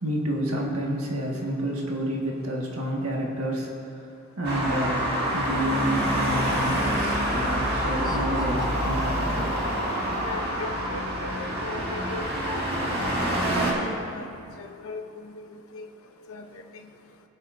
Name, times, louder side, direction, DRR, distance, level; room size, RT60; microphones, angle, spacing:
voice 1, 0.0-4.0 4.4-9.5, equal, 80° right, -1 dB, 1.7 m, -29 dB
Traffic noise roadway noise, 4.4-13.7, equal, 50° right, 2.1 m, -27 dB
Laughter, 7.8-10.2, left 4 dB, 20° left, 0.4 m, -40 dB
voice 2, 10.2-13.5 13.8-15.9 16.3-16.9, left 3 dB, 75° left, 5 dB, 0.8 m, -39 dB
19.0 x 8.3 x 2.6 m, 2.6 s
head